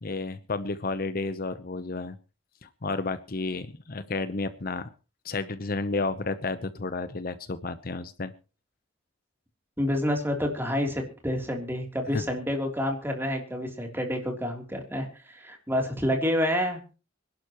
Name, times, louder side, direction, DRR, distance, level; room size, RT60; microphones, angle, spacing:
voice 1, 0.0-2.2 2.6-4.9 5.2-8.3 12.1-12.2, left 3 dB, 45° left, 12 dB, 0.8 m, -31 dB
voice 2, 9.8-16.9, equal, 10° right, 2 dB, 3.2 m, -28 dB
25.5 x 11.5 x 3.0 m, 0.33 s
head